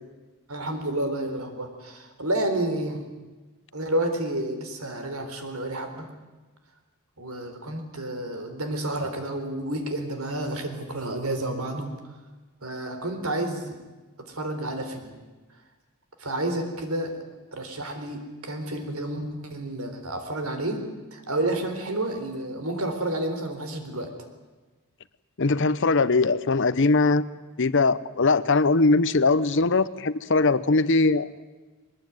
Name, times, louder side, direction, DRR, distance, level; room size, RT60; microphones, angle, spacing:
voice 1, 0.5-3.0 3.7-6.1 7.2-11.9 12.6-13.7 14.2-15.2 16.2-17.2 17.5-20.8 21.1-24.1, right 1 dB, 75° right, 6 dB, 3.9 m, -30 dB
voice 2, 25.4-27.2 27.6-31.3, left 3 dB, 55° left, 16 dB, 0.8 m, -21 dB
22.0 x 20.0 x 9.4 m, 1.2 s
head